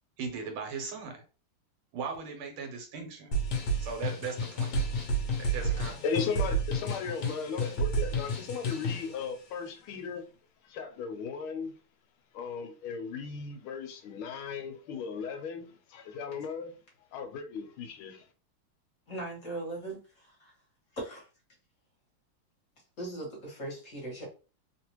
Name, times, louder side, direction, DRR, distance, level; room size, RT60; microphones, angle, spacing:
voice 1, 0.2-1.2 1.9-3.3 3.8-4.8 5.4-6.0, right 5 dB, 75° right, 1.7 m, -38 dB
sound 1, 3.3-9.1, right 1 dB, 60° left, 1.2 m, -31 dB
voice 2, 5.6-10.2 10.6-11.7 12.3-16.7 17.1-18.3, left 5 dB, 80° left, 1.4 m, -37 dB
voice 3, 19.1-20.5 20.9-21.3 23.0-24.3, right 2 dB, 45° left, 1.3 m, -39 dB
3.5 x 2.5 x 2.9 m
omnidirectional pair, 2.4 m